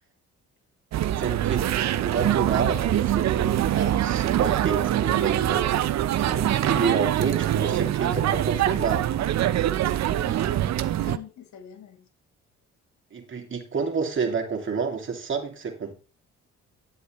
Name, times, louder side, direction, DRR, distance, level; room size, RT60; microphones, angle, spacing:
sound 1, 0.9-11.2, right 12 dB, 65° right, 0.6 m, -24 dB
voice 1, 1.2-5.7 6.2-9.1 13.1-15.9, right 5 dB, 40° right, 2.4 m, -29 dB
voice 2, 10.1-12.1, left 10 dB, 65° left, 1.6 m, -45 dB
10.0 x 8.1 x 3.0 m
cardioid pair, 90°, 30 cm